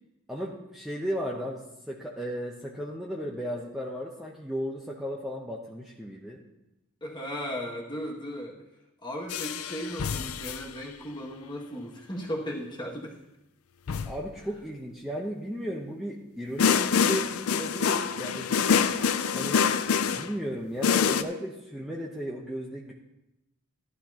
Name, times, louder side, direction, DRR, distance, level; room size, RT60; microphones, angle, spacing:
voice 1, 0.3-6.4 14.1-18.5 19.3-19.6 20.1-22.9, equal, ahead, -3 dB, 0.9 m, -35 dB
voice 2, 7.0-8.6 9.0-13.2, equal, 20° left, -3 dB, 2.1 m, -36 dB
sound 1, 9.3-10.7 13.9-14.3 16.6-20.3 20.8-21.2, left 6 dB, 70° left, 0.5 m, -26 dB
14.5 x 11.5 x 2.9 m, 0.94 s
head